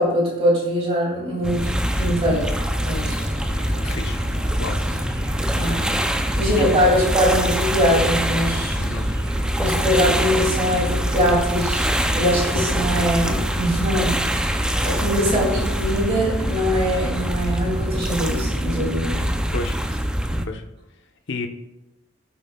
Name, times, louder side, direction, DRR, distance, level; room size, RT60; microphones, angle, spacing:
voice 1, 0.0-2.5 2.8-3.2 5.5-5.8 6.4-8.8 9.6-11.9 12.1-19.3 20.3-20.4, equal, 30° right, -4 dB, 2.5 m, -22 dB
sound 1, 1.4-20.5, equal, 5° right, 0.5 m, -24 dB
sound 2, 2.4-15.0, equal, 65° right, 3.0 m, -41 dB
voice 2, 3.8-4.2 4.6-4.8 8.8-9.1 19.5-19.8 20.5-20.6 21.3-21.5, left 3 dB, 60° left, 5 dB, 0.9 m, -30 dB
17.5 x 7.2 x 2.3 m, 0.96 s
head